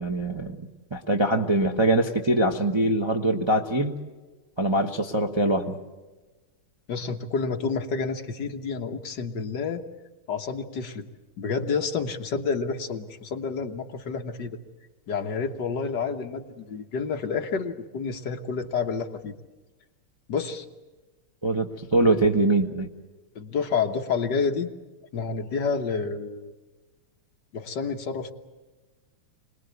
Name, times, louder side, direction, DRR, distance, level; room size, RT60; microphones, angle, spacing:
voice 1, 0.0-3.9 4.6-5.8 21.4-22.9, right 1 dB, 20° right, 1 dB, 0.8 m, -23 dB
voice 2, 6.9-9.9 10.3-11.1 11.4-14.6 15.1-19.4 20.3-20.7 22.1-22.2 23.4-24.7 25.1-26.5 27.5-28.3, left 5 dB, 60° left, 5 dB, 1.6 m, -29 dB
26.0 x 20.0 x 8.1 m, 1.2 s
omnidirectional pair, 2.4 m